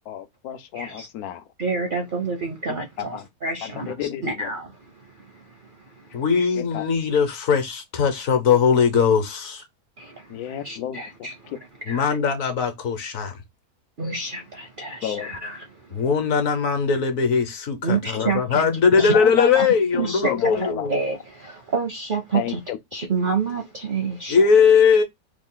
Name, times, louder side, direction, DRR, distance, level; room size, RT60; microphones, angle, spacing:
voice 1, 0.1-1.4 2.7-3.2 3.6-4.5 6.6-6.8 10.3-11.0 15.0-15.3 18.1-18.2 19.0-19.7 19.9-20.9 22.3-22.8, left 10 dB, 80° left, 1.1 m, -32 dB
voice 2, 0.7-1.1 1.6-6.2 10.0-11.6 11.9-12.2 14.0-16.1 17.8-18.6 19.0-19.2 20.0-22.6 22.9-24.4, right 4 dB, 55° right, 0.6 m, -29 dB
voice 3, 6.1-9.6 11.9-13.3 15.9-20.9 24.3-25.0, left 6 dB, 65° left, 1.2 m, -20 dB
3.3 x 2.3 x 3.6 m
omnidirectional pair, 1.6 m